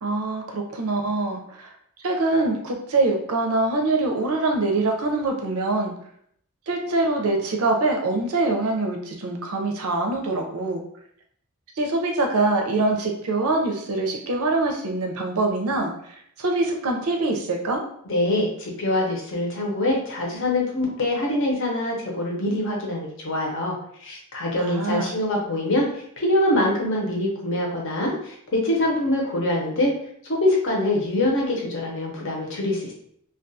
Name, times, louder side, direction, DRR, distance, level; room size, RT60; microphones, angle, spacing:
voice 1, 0.0-1.7 2.0-5.9 6.7-10.8 11.8-17.8 24.6-25.1, right 2 dB, 70° right, 2 dB, 0.5 m, -24 dB
voice 2, 18.1-29.9 30.2-32.9, left 1 dB, 60° left, -1 dB, 0.7 m, -24 dB
2.3 x 2.3 x 2.6 m, 0.67 s
head